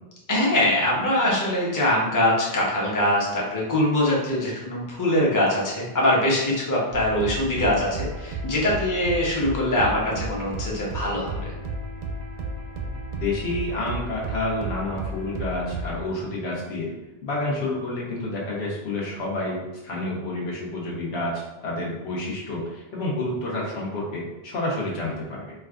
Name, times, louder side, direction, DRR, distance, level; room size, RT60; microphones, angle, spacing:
voice 1, 0.3-11.5, left 1 dB, 20° left, -4 dB, 0.7 m, -23 dB
sound 1, 6.9-16.0, right 2 dB, 60° right, 0.6 m, -33 dB
voice 2, 13.1-16.9 17.2-25.4, left 2 dB, 80° left, -4 dB, 1.1 m, -29 dB
4.5 x 2.2 x 2.4 m, 1.1 s
omnidirectional pair, 1.1 m